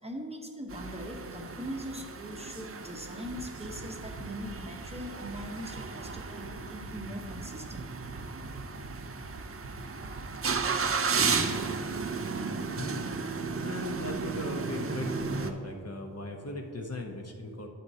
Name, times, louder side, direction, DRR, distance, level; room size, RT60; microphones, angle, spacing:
voice 1, 0.0-8.1, equal, 15° right, 1 dB, 0.9 m, -41 dB
sound 1, 0.7-15.5, right 5 dB, 30° right, 0.5 m, -34 dB
sound 2, 3.2-10.9, right 3 dB, 80° right, 1.0 m, -45 dB
voice 2, 12.8-13.1 13.6-17.7, left 2 dB, 35° left, 2 dB, 0.7 m, -38 dB
9.2 x 7.7 x 2.7 m, 2.7 s
cardioid pair, 65°, 44 cm